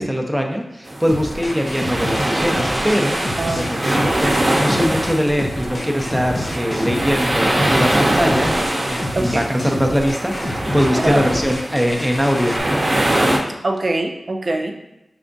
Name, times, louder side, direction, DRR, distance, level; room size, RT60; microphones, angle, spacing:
voice 1, 0.0-3.2 3.5-8.6 8.9-12.6, equal, ahead, 2 dB, 0.7 m, -21 dB
sound 1, 0.9-13.4, right 1 dB, 40° right, 0.8 m, -22 dB
sound 2, 1.1-12.6, left 1 dB, 45° left, 0.7 m, -29 dB
voice 2, 3.4-4.1 9.2-9.4 11.0-11.2 13.6-14.7, right 2 dB, 60° right, 3 dB, 0.4 m, -23 dB
4.9 x 3.4 x 2.6 m, 0.90 s
cardioid pair, 45°, 0 cm